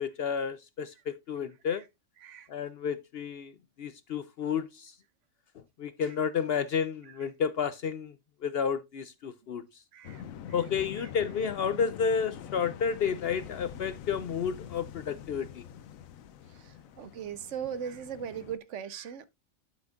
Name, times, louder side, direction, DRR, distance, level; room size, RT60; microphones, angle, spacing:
voice 1, 0.0-1.8 2.5-3.5 3.8-4.9 5.8-8.1 8.4-9.6 10.5-15.6, left 7 dB, 60° left, 0.7 m, -31 dB
voice 2, 9.9-10.2 11.0-11.1 16.5-19.3, right 8 dB, 65° right, 1.0 m, -39 dB
sound 1, 10.0-18.6, left 9 dB, 85° left, 1.1 m, -45 dB
12.0 x 6.2 x 2.4 m
omnidirectional pair, 1.4 m